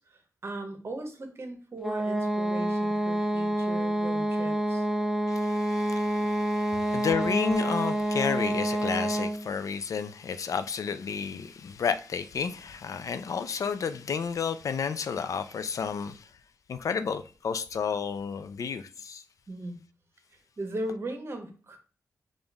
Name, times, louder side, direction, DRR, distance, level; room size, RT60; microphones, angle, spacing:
voice 1, 0.0-4.8 19.5-19.8 20.6-21.8, right 1 dB, 45° right, 1.1 m, -38 dB
sound 1, 1.8-9.5, right 1 dB, 5° right, 0.6 m, -28 dB
voice 2, 5.3-16.3 16.7-19.2, left 6 dB, 70° left, 0.4 m, -31 dB
5.4 x 2.5 x 3.4 m
wide cardioid pair, 90°, 6 cm